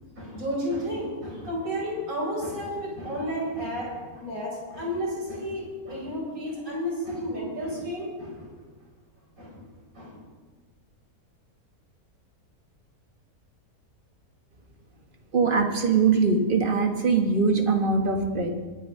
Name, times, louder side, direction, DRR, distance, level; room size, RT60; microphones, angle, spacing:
voice 1, 0.2-8.5 9.4-9.7 9.9-10.2, equal, 60° right, -4 dB, 5.3 m, -32 dB
voice 2, 15.3-18.5, right 4 dB, 35° right, 4 dB, 1.4 m, -22 dB
22.0 x 9.8 x 3.7 m, 1.4 s
omnidirectional pair, 1.6 m